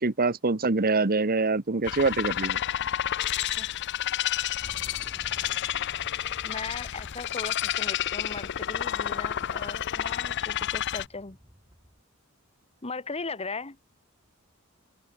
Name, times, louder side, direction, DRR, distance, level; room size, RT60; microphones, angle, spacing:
voice 1, 0.0-2.6, right 3 dB, 45° right, 1.1 m, -25 dB
sound 1, 1.8-11.1, left 11 dB, 55° left, 0.5 m, -30 dB
sound 2, 4.6-12.0, equal, 15° right, 4.0 m, -51 dB
voice 2, 6.4-11.4 12.8-13.8, left 4 dB, 30° left, 1.3 m, -38 dB
open air
head